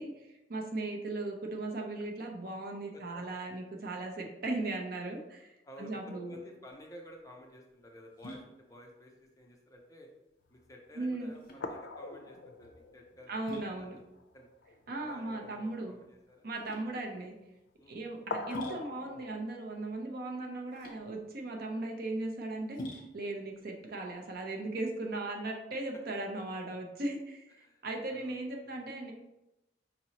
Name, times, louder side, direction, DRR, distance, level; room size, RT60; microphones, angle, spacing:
voice 1, 0.0-6.3 11.0-11.3 13.3-14.0 14.9-15.9 16.4-17.3 17.9-22.8 23.1-29.1, right 2 dB, 60° right, 1 dB, 0.7 m, -37 dB
voice 2, 2.9-3.4 5.6-10.1 10.5-14.0 14.3-14.5 15.0-16.5 17.8-18.0 21.5-21.7 23.4-23.5 25.9-26.0 27.6-28.8, equal, 20° left, 1 dB, 0.6 m, -53 dB
sound 1, 6.6-25.2, equal, 55° left, 1.0 m, -50 dB
sound 2, 10.5-10.6 11.1-11.2 11.6-13.9 14.2-14.3 14.6-14.8 18.3-19.3, left 3 dB, 85° left, 0.4 m, -42 dB
5.3 x 2.9 x 2.9 m, 0.94 s
head